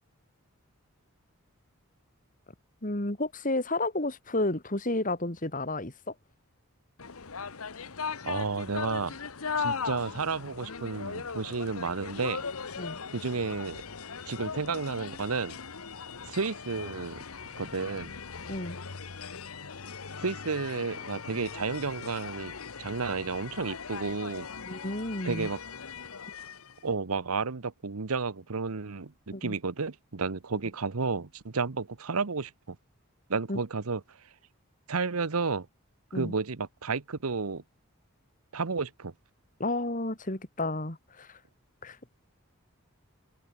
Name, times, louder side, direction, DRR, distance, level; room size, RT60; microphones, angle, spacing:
voice 1, 2.8-6.1 12.8-13.0 18.5-18.8 24.7-25.5 29.3-29.6 33.5-33.6 36.1-36.3 39.6-41.4 41.8-42.0, left 2 dB, 35° left, 2.8 m, -31 dB
sound 1, 7.0-26.8, left 5 dB, 80° left, 1.3 m, -39 dB
voice 2, 8.2-9.2 9.5-12.4 13.1-13.8 14.3-15.6 16.3-17.2 17.6-18.1 20.2-24.5 25.2-25.6 26.8-32.8 33.3-34.2 34.9-35.7 36.1-37.6 38.5-39.1, right 4 dB, 85° right, 1.0 m, -32 dB
head